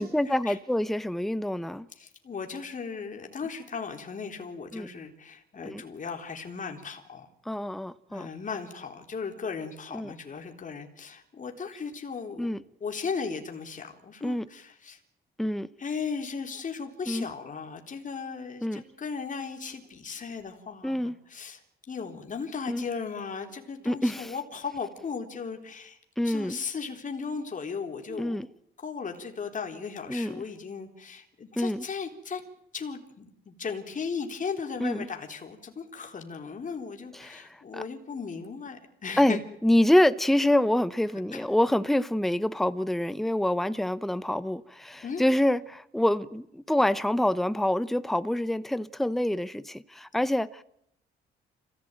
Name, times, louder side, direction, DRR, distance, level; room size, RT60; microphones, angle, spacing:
voice 1, 0.0-1.9 4.7-4.9 5.6-5.8 7.5-8.3 9.9-10.1 12.4-12.6 14.2-14.5 15.4-15.7 17.1-17.3 18.6-18.8 20.8-21.1 22.7-22.8 23.9-24.3 26.2-26.6 28.1-28.5 30.1-30.4 31.6-31.8 34.8-35.1 37.2-37.8 39.2-50.6, left 1 dB, ahead, 0.9 m, -26 dB
voice 2, 2.0-7.3 8.1-12.5 12.8-15.0 15.8-21.6 21.9-26.0 26.2-28.4 28.8-32.4 32.7-39.4 41.3-41.4 45.0-45.2, left 5 dB, 40° left, 3.7 m, -36 dB
26.5 x 15.5 x 9.1 m
cardioid pair, 90°, 20 cm